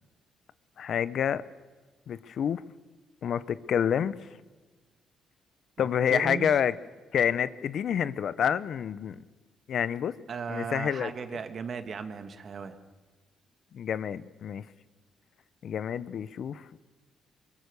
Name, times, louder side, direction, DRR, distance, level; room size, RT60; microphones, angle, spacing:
voice 1, 0.8-1.4 2.1-2.6 3.2-4.2 5.8-6.7 7.1-9.2 9.7-10.1 10.5-11.1 13.7-14.6 15.6-16.8, left 8 dB, 65° left, 16 dB, 0.7 m, -28 dB
voice 2, 5.8-6.6 10.3-12.8, right 6 dB, 50° right, 8 dB, 1.8 m, -36 dB
23.0 x 22.5 x 6.9 m, 1.3 s
cardioid pair, 90°, 0 cm